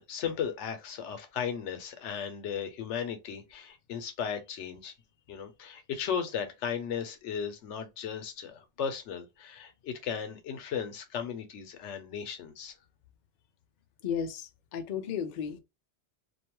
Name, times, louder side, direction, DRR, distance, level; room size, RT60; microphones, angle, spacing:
voice 1, 0.0-4.9 5.3-12.7, left 7 dB, 85° left, 1.0 m, -36 dB
voice 2, 14.0-15.6, left 7 dB, 55° left, 0.5 m, -34 dB
2.5 x 2.2 x 2.9 m
omnidirectional pair, 1.2 m